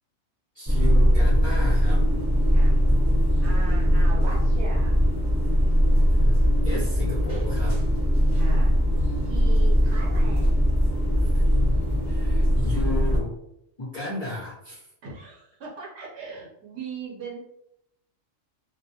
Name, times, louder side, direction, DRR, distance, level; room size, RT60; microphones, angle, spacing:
voice 1, 0.5-2.1 6.1-7.8 11.2-11.7 12.0-13.4 13.8-14.8, left 2 dB, 40° left, -8 dB, 0.6 m, -34 dB
sound 1, 0.7-13.2, equal, 15° right, 0.7 m, -20 dB
voice 2, 3.4-5.0 8.3-8.7 9.2-10.6 15.0-17.4, right 3 dB, 65° right, -3 dB, 0.9 m, -38 dB
2.3 x 2.1 x 2.6 m, 0.79 s
omnidirectional pair, 1.3 m